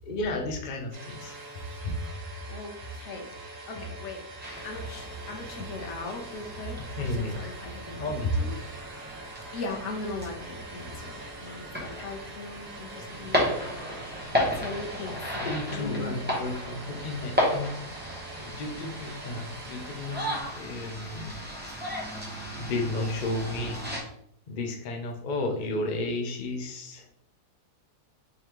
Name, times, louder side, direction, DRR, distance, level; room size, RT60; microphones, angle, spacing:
voice 1, 0.0-1.4 7.0-7.4 8.0-8.5 15.4-17.8 18.3-21.4 22.6-23.8 24.5-27.1, left 2 dB, 80° left, 2 dB, 0.4 m, -33 dB
sound 1, 0.9-20.4, right 2 dB, 75° right, 0.3 m, -44 dB
voice 2, 1.8-2.2 2.5-3.3 3.7-4.2 4.6-8.5 9.5-13.4 14.6-16.2, left 1 dB, 60° left, 2 dB, 0.8 m, -36 dB
sound 2, 4.4-24.0, equal, 10° right, 0.7 m, -34 dB
3.7 x 3.3 x 2.9 m, 0.69 s
omnidirectional pair, 1.7 m